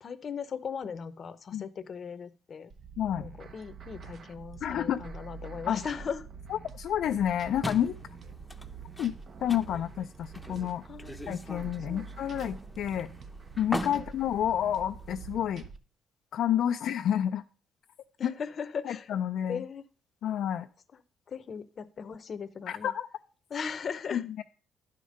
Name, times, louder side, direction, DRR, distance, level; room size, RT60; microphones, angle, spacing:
voice 1, 0.0-2.7 3.2-6.2 10.8-11.2 11.9-12.1 13.8-14.1 18.2-19.1 19.5-19.8 20.9-21.0 21.3-22.9 23.5-24.2, left 6 dB, 50° left, 13 dB, 0.7 m, -38 dB
sound 1, 2.7-15.8, right 5 dB, 55° right, 0.9 m, -46 dB
voice 2, 3.0-3.3 4.6-5.0 5.7-5.8 6.7-8.0 9.0-9.1 9.4-10.8 11.3-13.1 13.6-15.6 16.3-17.4 18.2-18.3 18.9-19.6 20.2-20.7 22.7-23.1 24.1-24.4, left 10 dB, 75° left, 6 dB, 0.4 m, -29 dB
sound 2, 7.6-15.4, left 1 dB, 10° left, 0.7 m, -42 dB
11.0 x 5.1 x 5.3 m, 0.38 s
cardioid pair, 90°, 0 cm